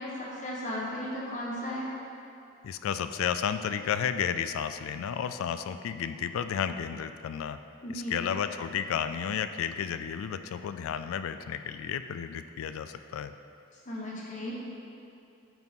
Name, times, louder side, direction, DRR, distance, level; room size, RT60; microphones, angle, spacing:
voice 1, 0.0-1.9 7.8-8.2 13.9-14.6, equal, 35° left, -5 dB, 1.1 m, -35 dB
voice 2, 2.6-7.6 7.9-13.3, left 8 dB, 80° left, 11 dB, 0.3 m, -32 dB
8.9 x 4.0 x 3.6 m, 2.7 s
head